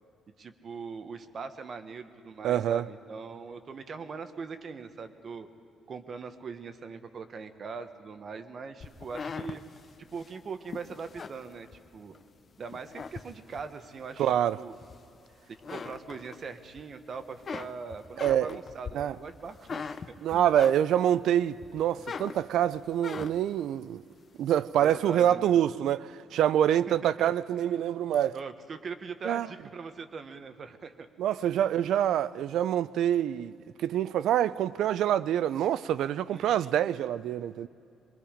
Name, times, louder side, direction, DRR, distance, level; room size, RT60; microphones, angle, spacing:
voice 1, 0.4-5.5 5.9-9.6 10.1-11.7 11.9-12.1 12.6-14.7 15.7-20.0 20.3-20.5 24.8-25.6 26.9-27.3 28.3-31.1 36.3-36.7, right 5 dB, 40° right, 1.1 m, -41 dB
voice 2, 2.4-2.8 14.2-14.6 18.2-18.5 18.9-19.1 20.2-24.0 24.4-28.4 29.2-29.5 31.2-37.7, right 10 dB, 70° right, 0.4 m, -26 dB
sound 1, 8.8-12.2 12.6-13.7 14.3-15.3 15.5-16.8 17.1-21.2 21.6-23.6, left 5 dB, 35° left, 0.6 m, -41 dB
24.0 x 21.5 x 5.1 m
cardioid pair, 145°, 0 cm